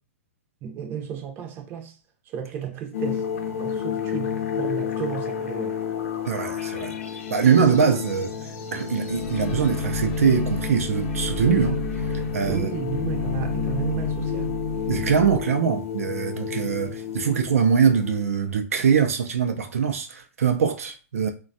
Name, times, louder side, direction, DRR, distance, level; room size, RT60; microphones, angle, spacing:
voice 1, 0.6-2.0 2.3-3.3 3.6-5.8 12.5-14.6, right 8 dB, 30° right, 0.6 m, -33 dB
sound 1, 2.9-18.2, left 8 dB, 75° left, 0.6 m, -32 dB
voice 2, 6.2-6.9 7.3-8.3 8.7-11.8 12.3-12.7 14.9-21.3, right 6 dB, 80° right, 0.4 m, -22 dB
sound 2, 9.1-15.4, left 3 dB, 35° left, 0.9 m, -29 dB
3.1 x 2.2 x 2.6 m
hypercardioid pair, 130°, 8 cm